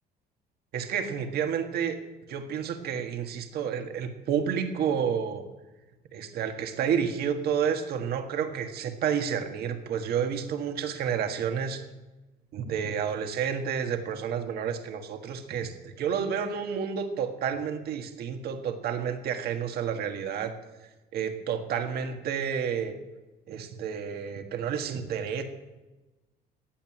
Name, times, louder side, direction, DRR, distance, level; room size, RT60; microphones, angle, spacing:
voice 1, 0.7-2.0 2.3-5.5 6.1-11.8 12.5-20.5 21.1-22.9 23.5-25.4, right 7 dB, 70° right, 6 dB, 1.7 m, -30 dB
15.0 x 9.1 x 9.0 m, 1.1 s
cardioid pair, 110°, 17 cm